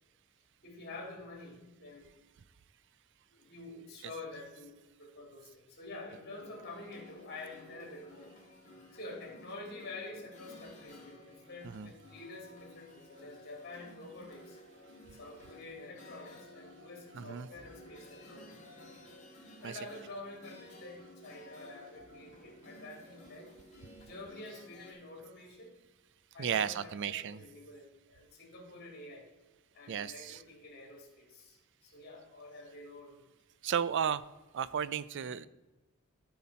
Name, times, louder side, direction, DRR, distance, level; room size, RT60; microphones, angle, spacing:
voice 1, 0.6-2.1 3.3-8.3 8.9-14.6 15.2-18.5 19.6-23.5 24.0-25.8 26.3-29.3 29.7-33.2 35.1-35.3, left 2 dB, 50° left, 1 dB, 2.9 m, -48 dB
sound 1, 6.1-24.9, left 1 dB, 35° left, 2.2 m, -55 dB
voice 2, 17.1-17.5 19.6-19.8 26.4-27.4 29.9-30.4 33.6-34.2 34.5-35.5, right 8 dB, 55° right, 16 dB, 0.4 m, -34 dB
14.0 x 5.8 x 4.2 m, 1.1 s
head